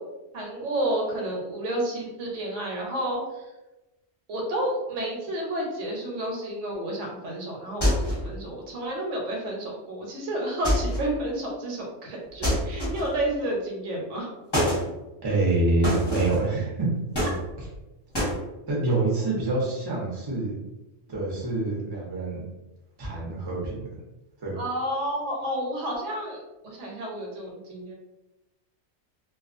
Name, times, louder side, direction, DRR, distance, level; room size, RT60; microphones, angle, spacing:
voice 1, 0.3-3.4 4.3-14.3 24.6-27.9, right 1 dB, 75° right, -1 dB, 1.0 m, -30 dB
sound 1, 7.8-8.3 10.6-11.1 12.4-13.2 14.5-14.9 15.8-16.5 17.1-17.8 18.1-18.4, equal, 25° left, 0.7 m, -25 dB
voice 2, 15.2-16.9 18.7-20.6 21.1-22.5 23.0-23.8 24.4-24.6, right 2 dB, 30° right, -4 dB, 0.5 m, -26 dB
2.3 x 2.3 x 2.5 m, 1.0 s
omnidirectional pair, 1.3 m